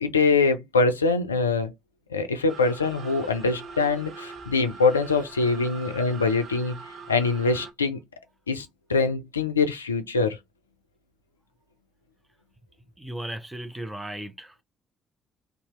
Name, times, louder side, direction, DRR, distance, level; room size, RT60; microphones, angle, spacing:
voice 1, 0.0-1.7 2.1-6.8 7.1-8.0 8.5-10.4, left 4 dB, 85° left, 0.3 m, -24 dB
sound 1, 2.5-7.7, right 4 dB, 60° right, 0.6 m, -42 dB
voice 2, 13.0-14.6, right 1 dB, 10° right, 0.7 m, -36 dB
2.7 x 2.3 x 3.0 m
figure-of-eight pair, 45°, 0 cm